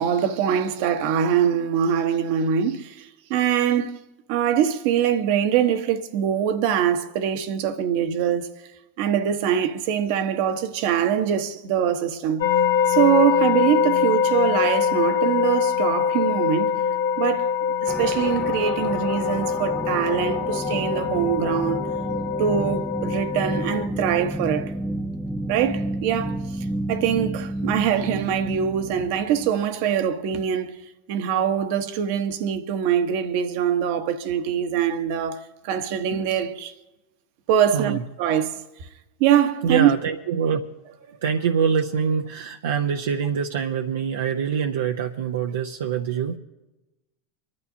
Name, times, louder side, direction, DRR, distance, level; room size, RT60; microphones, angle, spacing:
voice 1, 0.0-4.0 4.3-8.5 9.0-12.5 12.9-16.8 17.2-17.5 17.8-21.9 22.4-24.8 25.5-30.8 31.1-36.7 37.5-38.9 39.2-39.9, right 9 dB, 60° right, 1.1 m, -23 dB
sound 1, 12.4-23.9, left 7 dB, 70° left, 0.7 m, -24 dB
sound 2, 17.9-29.6, right 1 dB, 5° right, 0.5 m, -31 dB
voice 2, 39.6-40.6 41.1-46.4, right 7 dB, 75° right, 0.7 m, -24 dB
28.0 x 11.5 x 2.8 m
hypercardioid pair, 90°, 0 cm